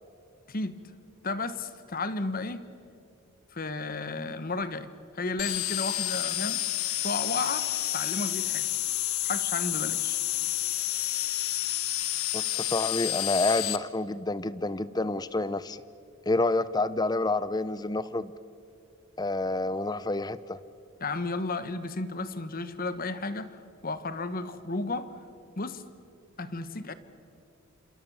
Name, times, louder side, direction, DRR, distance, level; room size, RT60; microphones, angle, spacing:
voice 1, 1.2-2.6 3.5-6.6 7.0-7.7 7.9-8.7 9.2-10.2 21.0-25.1 25.6-25.8 26.4-26.9, left 3 dB, 40° left, 12 dB, 1.2 m, -33 dB
sound 1, 5.4-13.8, left 14 dB, 75° left, 1.1 m, -30 dB
voice 2, 12.3-15.8 16.3-18.3 19.2-20.6, left 2 dB, 20° left, 16 dB, 0.6 m, -28 dB
27.5 x 27.0 x 7.2 m, 2.5 s
head